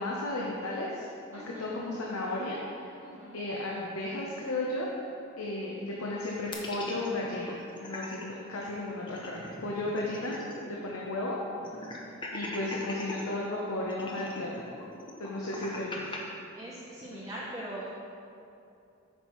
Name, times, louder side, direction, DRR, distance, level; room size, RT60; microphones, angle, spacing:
voice 1, 0.0-2.9 3.3-4.9 5.4-11.4 12.3-14.7 15.2-16.2 17.1-17.3, left 2 dB, 90° left, -3 dB, 0.8 m, -34 dB
voice 2, 1.3-1.7 3.0-3.4 16.5-17.9, right 1 dB, 15° right, -7 dB, 0.7 m, -41 dB
sound 1, 6.5-8.2 8.6-8.7 9.0-10.8 11.0-11.1 11.6-13.2 13.9-16.2, left 1 dB, 25° left, 0.7 m, -41 dB
8.4 x 5.4 x 3.0 m, 2.6 s
head